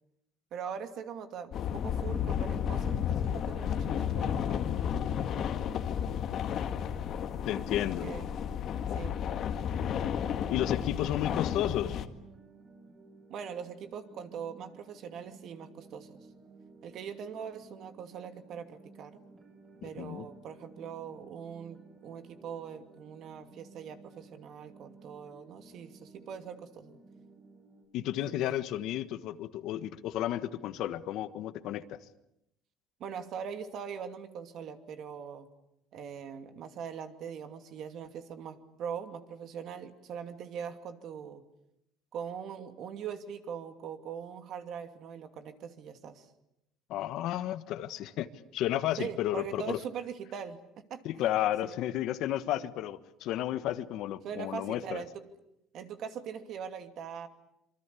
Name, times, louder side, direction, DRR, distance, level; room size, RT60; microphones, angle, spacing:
voice 1, 0.5-4.7 8.0-8.3 8.9-9.2 13.3-16.3 16.8-19.2 19.8-27.0 28.4-28.5 33.0-35.5 35.9-41.4 42.1-46.3 49.0-50.6 50.9-51.3 51.6-51.8 54.2-55.2 55.7-57.3, right 7 dB, 50° right, 8 dB, 2.6 m, -41 dB
sound 1, 1.5-12.1, left 8 dB, 45° left, 1.8 m, -32 dB
voice 2, 7.4-8.1 10.5-12.0 19.8-20.3 27.9-32.0 46.9-48.3 48.5-49.8 51.0-55.0, left 12 dB, 60° left, 12 dB, 1.4 m, -32 dB
sound 2, 9.4-27.9, right 4 dB, 30° right, 7.6 m, -55 dB
26.5 x 24.5 x 8.5 m, 0.82 s
cardioid pair, 145°, 0 cm